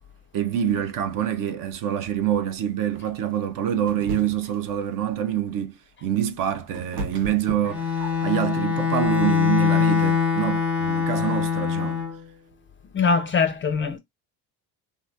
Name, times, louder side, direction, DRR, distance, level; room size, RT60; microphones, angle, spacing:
voice 1, 0.3-12.1, right 10 dB, 40° right, 0.6 m, -26 dB
sound 1, 3.9-4.6 6.2-8.5, right 3 dB, 90° right, 0.7 m, -34 dB
Bowed string instrument, 7.7-12.2, left 7 dB, ahead, 1.0 m, -23 dB
voice 2, 12.9-14.0, left 5 dB, 25° left, 0.5 m, -22 dB
3.0 x 2.4 x 2.6 m
figure-of-eight pair, 55°, 50 cm